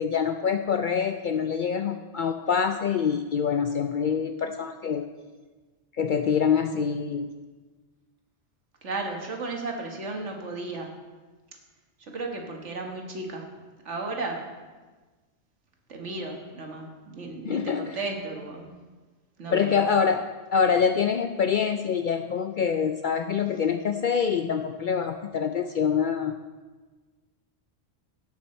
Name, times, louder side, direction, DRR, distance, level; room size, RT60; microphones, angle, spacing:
voice 1, 0.0-5.1 6.0-7.3 17.4-18.0 19.5-20.2 20.5-26.4, left 6 dB, 60° left, 7 dB, 0.5 m, -25 dB
voice 2, 8.8-10.9 12.0-13.5 13.9-14.5 15.9-18.7 19.4-19.9, right 3 dB, 85° right, 2 dB, 1.8 m, -34 dB
17.0 x 6.2 x 4.3 m, 1.3 s
omnidirectional pair, 1.2 m